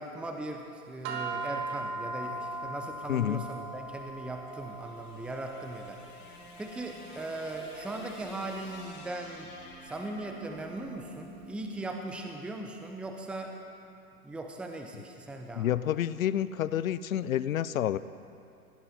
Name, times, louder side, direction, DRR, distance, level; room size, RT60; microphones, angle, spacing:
voice 1, 0.0-6.0 6.6-9.5 9.8-13.5 14.2-15.7, right 2 dB, ahead, 3 dB, 0.8 m, -39 dB
sound 1, 1.0-11.5, right 2 dB, 40° right, 2.3 m, -41 dB
voice 2, 3.1-3.5 15.5-18.0, left 11 dB, 60° left, 16 dB, 0.7 m, -29 dB
sound 2, 4.4-12.7, left 2 dB, 20° left, 2.7 m, -51 dB
20.0 x 16.5 x 4.3 m, 2.6 s
figure-of-eight pair, 115°, 47 cm